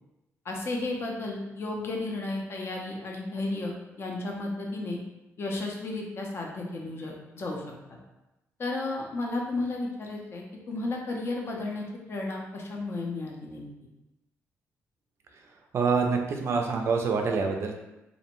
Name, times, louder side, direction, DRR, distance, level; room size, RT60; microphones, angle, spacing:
voice 1, 0.4-5.0 5.4-7.6 8.6-13.7, left 2 dB, 45° left, 0 dB, 0.5 m, -33 dB
voice 2, 15.7-17.8, right 4 dB, 55° right, 3 dB, 0.3 m, -26 dB
2.5 x 2.1 x 2.9 m, 0.97 s
cardioid pair, 105°, 6 cm